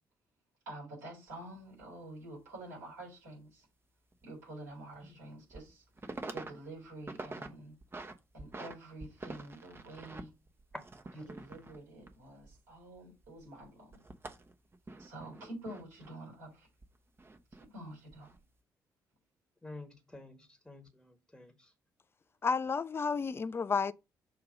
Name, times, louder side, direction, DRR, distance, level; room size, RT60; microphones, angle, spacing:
voice 1, 0.7-3.7 4.2-5.8 6.3-7.7 8.3-10.3 11.1-14.0 15.0-16.7 17.6-18.3, right 1 dB, 75° right, 4.0 m, -48 dB
sound 1, 1.3-1.4 1.8-1.9 4.1-4.2 4.7-4.8 5.3-5.7 6.0-6.5 6.8-7.5 7.8-8.7 9.0-13.0 13.2-16.1 16.8-17.7 18.1-18.4, right 2 dB, 25° right, 0.9 m, -46 dB
voice 2, 19.6-21.7, left 2 dB, 5° left, 1.3 m, -51 dB
voice 3, 22.4-23.9, left 5 dB, 25° left, 0.4 m, -31 dB
6.7 x 2.8 x 5.1 m
figure-of-eight pair, 40°, 10 cm